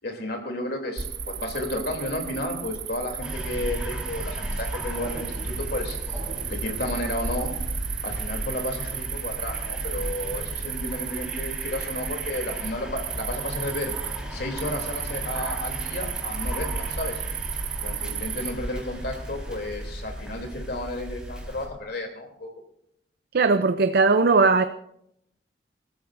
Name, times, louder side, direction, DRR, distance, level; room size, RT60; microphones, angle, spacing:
voice 1, 0.0-6.2 6.5-7.5 8.0-13.9 14.3-17.2 17.8-22.5, left 1 dB, 65° left, 2 dB, 3.1 m, -32 dB
Cricket, 1.0-19.9, right 7 dB, 80° right, 1.6 m, -34 dB
sound 1, 3.2-21.7, equal, 5° right, 4.3 m, -36 dB
voice 2, 23.3-24.6, right 4 dB, 60° right, 9 dB, 0.6 m, -19 dB
27.5 x 14.0 x 2.6 m, 0.77 s
head